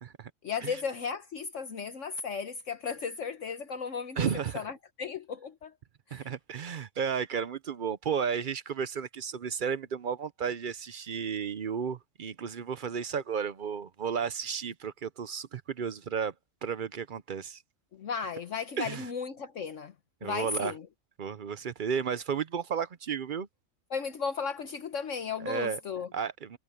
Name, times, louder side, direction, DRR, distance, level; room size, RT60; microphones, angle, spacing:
voice 1, 0.4-4.3 4.5-5.7 6.1-6.3 17.9-19.9 20.2-20.9 23.9-26.1, left 6 dB, 65° left, 1.3 m, -35 dB
voice 2, 4.2-4.6 6.1-16.3 16.6-17.6 18.8-19.1 20.2-20.7 21.2-23.5 25.4-25.8 26.1-26.6, right 7 dB, 50° right, 0.6 m, -33 dB
omnidirectional pair, 1.4 m